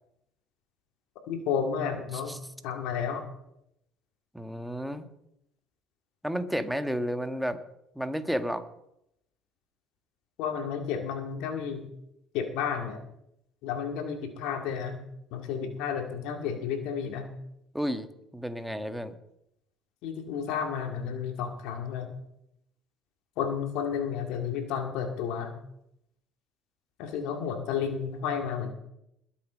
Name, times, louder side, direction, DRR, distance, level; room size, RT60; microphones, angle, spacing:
voice 1, 1.3-2.4 2.6-3.3 10.4-11.9 12.3-13.0 13.6-15.0 15.3-17.3 20.0-22.1 23.4-25.5 27.0-28.7, left 7 dB, 70° left, 5 dB, 2.3 m, -32 dB
voice 2, 4.3-5.1 6.2-7.6 7.9-8.7 17.7-18.1 18.3-19.1, equal, ahead, 9 dB, 1.6 m, -31 dB
21.5 x 7.3 x 5.2 m, 0.78 s
hypercardioid pair, 65°, 0 cm